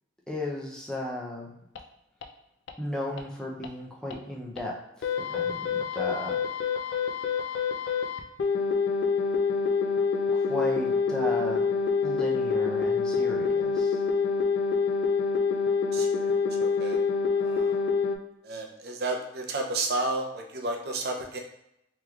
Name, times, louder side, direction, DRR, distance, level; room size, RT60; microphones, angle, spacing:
voice 1, 0.3-1.5 2.8-4.7 5.3-6.4 10.3-11.7 12.0-14.0, left 1 dB, 5° left, -3 dB, 0.5 m, -35 dB
sound 1, 1.8-1.9 2.2-2.3 2.7-2.8 3.2-3.3 3.6-3.7 4.1-4.2 4.6-4.7 5.0-18.2, left 5 dB, 80° left, 0.4 m, -26 dB
voice 2, 15.9-16.3 16.6-17.0 17.4-17.8 18.4-21.4, right 2 dB, 60° right, 2 dB, 0.5 m, -32 dB
3.3 x 3.0 x 2.3 m, 0.82 s
head